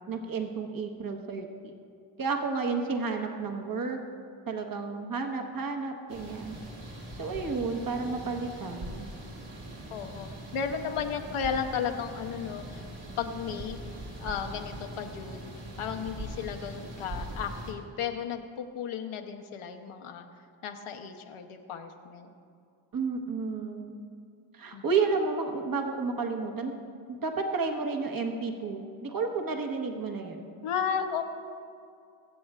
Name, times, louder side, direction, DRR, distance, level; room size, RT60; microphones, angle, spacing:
voice 1, 0.0-1.7 2.2-4.0 4.5-6.6 7.2-9.1 22.9-23.9 24.5-26.8 27.2-30.5, right 4 dB, 45° right, 4 dB, 1.2 m, -31 dB
sound 1, 6.1-17.7, right 1 dB, 65° right, 2.7 m, -42 dB
voice 2, 9.9-12.8 13.2-13.8 14.2-15.5 15.8-20.3 20.6-22.3 24.7-24.8 30.6-31.2, left 7 dB, 85° left, 6 dB, 1.0 m, -34 dB
22.5 x 7.8 x 2.4 m, 2.3 s
cardioid pair, 65°, 49 cm